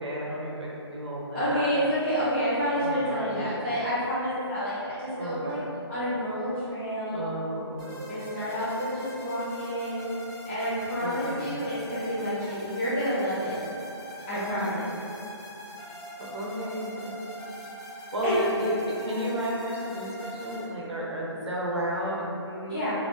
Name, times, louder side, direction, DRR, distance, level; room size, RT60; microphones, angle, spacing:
voice 1, 0.0-1.8 2.7-3.3 5.2-5.6 7.1-8.1 11.0-11.5 14.3-14.8 16.2-17.1 18.1-20.1 20.4-22.9, equal, 90° right, -5 dB, 0.9 m, -32 dB
voice 2, 1.3-5.6 5.9-7.3 8.1-13.6 14.3-14.9 18.2-18.4 22.7-22.9, equal, 25° left, -12 dB, 0.8 m, -29 dB
sound 1, 7.8-20.7, equal, 5° left, 0.3 m, -42 dB
4.1 x 2.8 x 2.6 m, 2.9 s
hypercardioid pair, 160°, 14 cm